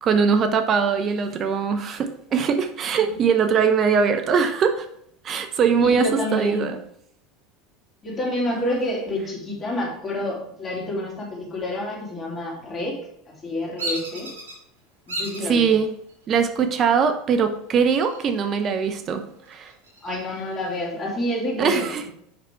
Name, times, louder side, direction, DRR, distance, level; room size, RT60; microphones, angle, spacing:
voice 1, 0.0-4.9 5.2-6.8 15.4-15.9 16.3-19.7 21.6-22.1, right 6 dB, 40° right, 8 dB, 0.7 m, -21 dB
voice 2, 5.8-6.7 8.0-13.0 13.3-14.3 15.1-15.8 20.0-21.9, left 1 dB, 30° left, -2 dB, 2.7 m, -28 dB
Bird vocalization bird call bird song, 13.8-14.5 15.1-15.5 16.1-16.6 17.8-18.5 18.9-19.0 19.4-20.9, right 1 dB, 85° right, 2.1 m, -33 dB
6.8 x 5.8 x 3.4 m, 0.70 s
hypercardioid pair, 85°, 0 cm